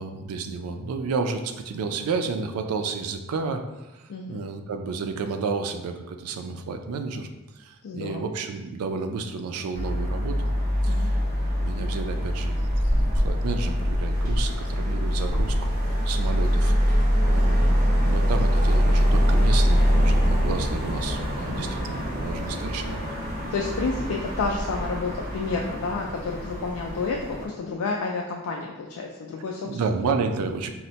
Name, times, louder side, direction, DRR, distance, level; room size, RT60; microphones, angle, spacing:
voice 1, 0.0-3.6 3.9-7.3 7.6-10.5 10.8-15.7 16.0-23.1 29.6-30.7, right 4 dB, 85° right, 6 dB, 0.3 m, -31 dB
voice 2, 4.1-4.4 7.8-8.3 10.9-11.1 21.5-21.7 23.5-29.7 29.9-30.0, left 4 dB, 80° left, 0 dB, 0.3 m, -30 dB
sound 1, 9.7-27.5, equal, 40° right, 1.2 m, -24 dB
4.1 x 2.1 x 2.7 m, 1.1 s
head